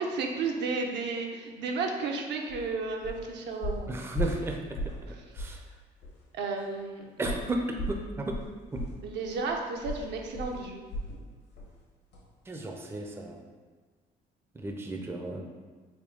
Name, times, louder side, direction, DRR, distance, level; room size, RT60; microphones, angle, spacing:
voice 1, 0.0-4.2 5.1-5.2 6.3-7.1 9.0-10.8, right 4 dB, 65° right, 1 dB, 0.5 m, -33 dB
sound 1, 2.5-2.7 3.0-3.3 3.6-5.1 5.3-5.6 6.0-6.1 7.2-11.2 11.5-11.8 12.1-12.2, equal, 65° left, 1.0 m, -36 dB
voice 2, 3.9-4.8 5.3-5.6 7.2-7.6 7.9-8.0 8.3-8.4 8.7-8.8 12.5-13.4 14.6-15.4, right 2 dB, 15° right, 2 dB, 0.4 m, -33 dB
3.6 x 2.2 x 3.6 m, 1.4 s
supercardioid pair, 70°, 19 cm